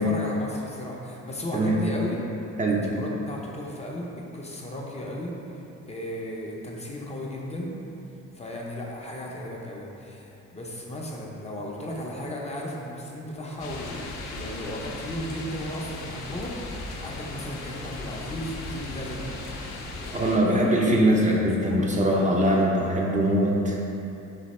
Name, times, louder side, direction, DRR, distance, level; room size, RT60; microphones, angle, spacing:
voice 1, 0.0-2.2 2.7-5.4 5.9-7.7 8.4-19.3 20.0-20.9 21.6-21.9, left 1 dB, 20° left, -3 dB, 0.5 m, -35 dB
voice 2, 2.6-2.9 20.1-23.8, right 1 dB, 25° right, -2 dB, 0.5 m, -22 dB
sound 1, 13.6-20.4, left 2 dB, 60° left, 0.6 m, -37 dB
4.1 x 2.8 x 4.1 m, 2.8 s
cardioid pair, 90°, 30 cm